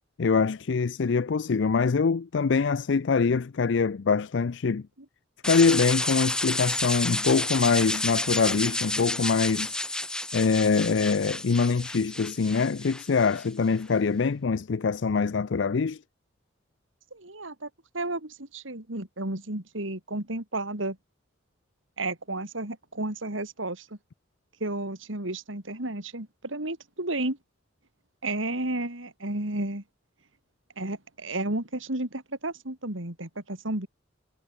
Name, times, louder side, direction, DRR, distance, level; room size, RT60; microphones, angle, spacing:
voice 1, 0.2-4.9 5.4-9.8 10.3-16.0, left 5 dB, 65° left, 0.5 m, -24 dB
sound 1, 5.4-13.5, left 2 dB, 5° left, 0.3 m, -30 dB
voice 2, 17.1-17.7 17.9-21.0 22.0-23.9 24.6-27.4 28.2-29.8 30.8-33.9, right 2 dB, 80° right, 4.0 m, -32 dB
head